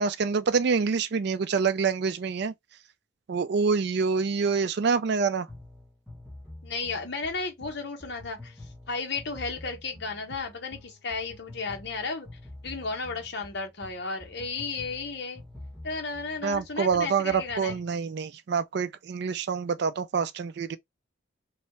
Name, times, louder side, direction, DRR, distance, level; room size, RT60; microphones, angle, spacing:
voice 1, 0.0-2.5 3.3-5.5 16.4-20.8, right 5 dB, 55° right, 0.4 m, -26 dB
sound 1, 5.5-17.9, left 1 dB, 5° left, 1.7 m, -47 dB
voice 2, 6.6-8.6 8.9-12.3 12.6-15.4 15.8-17.8, left 4 dB, 55° left, 1.1 m, -34 dB
3.1 x 2.8 x 2.9 m
head